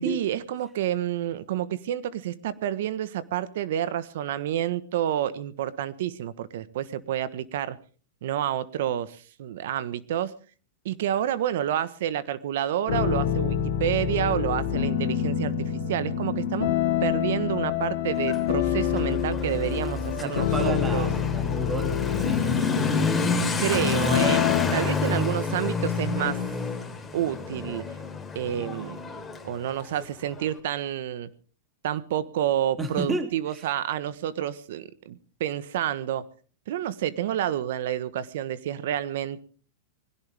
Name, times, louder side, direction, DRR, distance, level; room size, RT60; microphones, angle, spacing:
voice 1, 0.0-7.8 8.2-10.3 10.8-16.7 17.0-21.1 23.6-24.4 24.7-26.4 27.1-27.8 28.3-31.3 31.8-36.2 36.7-39.4, right 11 dB, 70° right, 15 dB, 1.4 m, -29 dB
sound 1, 12.9-24.7, left 9 dB, 70° left, 2.6 m, -26 dB
Motorcycle / Accelerating revving vroom, 18.1-30.5, left 4 dB, 10° left, 3.9 m, -30 dB
voice 2, 20.2-22.9 32.8-33.3 33.5-33.6, right 2 dB, 20° right, 6 dB, 3.0 m, -32 dB
21.0 x 16.5 x 3.6 m, 0.40 s
hypercardioid pair, 120°, 0 cm